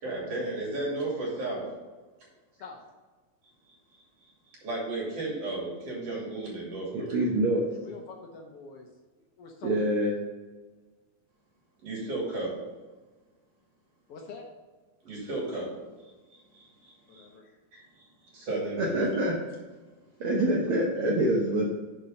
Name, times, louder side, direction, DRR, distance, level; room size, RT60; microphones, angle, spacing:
voice 1, 0.0-1.6 4.6-7.3 11.8-12.5 15.0-15.7 16.6-16.7 17.1-17.3 17.7-17.8 18.3-19.1, right 2 dB, 50° right, -4 dB, 3.5 m, -33 dB
voice 2, 7.1-7.6 9.6-10.1 18.8-19.3 20.2-21.7, right 1 dB, 65° right, -3 dB, 1.3 m, -25 dB
voice 3, 7.7-8.9 9.4-9.9 14.1-14.5 17.1-17.6, left 4 dB, 75° left, 1 dB, 1.4 m, -45 dB
6.7 x 6.2 x 5.5 m, 1.3 s
omnidirectional pair, 3.8 m